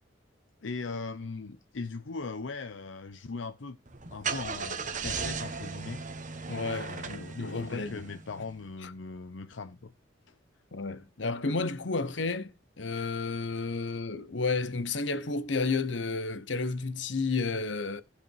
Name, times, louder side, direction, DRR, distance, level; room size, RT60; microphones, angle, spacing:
voice 1, 0.6-3.8 4.1-6.0 6.8-9.9 10.3-10.4, left 4 dB, 90° left, 0.7 m, -39 dB
Car / Engine starting, 3.9-8.5, right 5 dB, 45° right, 1.5 m, -37 dB
voice 2, 6.5-8.0 8.8-8.9 10.7-12.5 12.8-18.0, left 3 dB, 75° left, 1.0 m, -31 dB
15.5 x 5.2 x 4.6 m
head